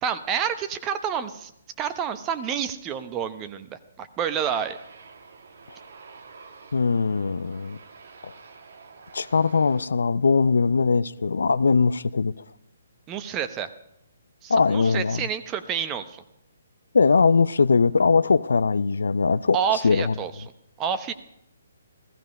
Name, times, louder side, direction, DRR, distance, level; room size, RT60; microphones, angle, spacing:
voice 1, 0.0-1.5 1.8-4.8 13.1-13.7 14.4-16.2 19.5-20.3 20.8-21.1, right 8 dB, 20° right, 0.9 m, -28 dB
Aircraft, 4.4-9.9, right 4 dB, 65° right, 1.4 m, -48 dB
voice 2, 6.7-7.8 8.2-8.3 9.1-12.3 14.5-15.3 16.9-20.1, left 4 dB, 80° left, 0.5 m, -21 dB
15.5 x 14.5 x 5.4 m
hypercardioid pair, 145°, 0 cm